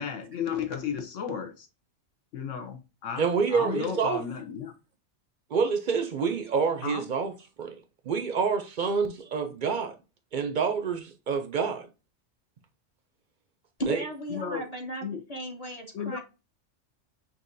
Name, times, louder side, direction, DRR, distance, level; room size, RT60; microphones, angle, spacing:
voice 1, 0.0-1.7 2.3-3.3 3.5-4.7 6.8-7.1 14.3-14.7 15.0-15.2 15.9-16.2, left 7 dB, 75° left, 1.1 m, -33 dB
voice 2, 3.2-4.2 5.5-7.8 8.0-10.0 10.3-11.9 13.9-14.0, right 5 dB, 55° right, 0.5 m, -27 dB
voice 3, 13.8-16.2, equal, 35° left, 0.9 m, -36 dB
6.1 x 2.7 x 2.5 m
omnidirectional pair, 1.3 m